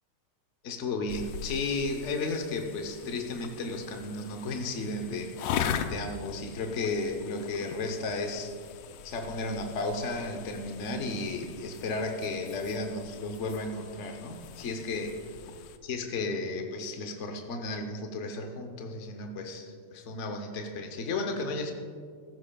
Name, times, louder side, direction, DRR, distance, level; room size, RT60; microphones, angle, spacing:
voice 1, 0.6-8.5 9.0-15.1 15.8-21.7, left 3 dB, 60° left, 4 dB, 0.7 m, -34 dB
sound 1, 1.1-15.8, left 8 dB, 90° left, 1.5 m, -40 dB
15.0 x 14.0 x 2.3 m, 2.1 s
omnidirectional pair, 2.3 m